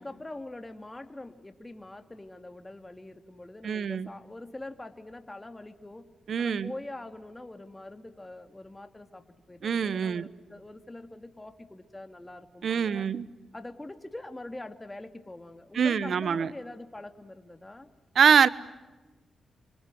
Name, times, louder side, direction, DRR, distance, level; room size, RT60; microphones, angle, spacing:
voice 1, 0.0-6.1 6.4-13.0 13.5-17.9, left 2 dB, 20° left, 2.7 m, -44 dB
voice 2, 3.6-4.1 6.3-6.7 9.6-10.3 12.6-13.3 15.7-16.5 18.1-18.5, right 7 dB, 65° right, 1.0 m, -24 dB
29.5 x 25.0 x 7.7 m
supercardioid pair, 45°, 0 cm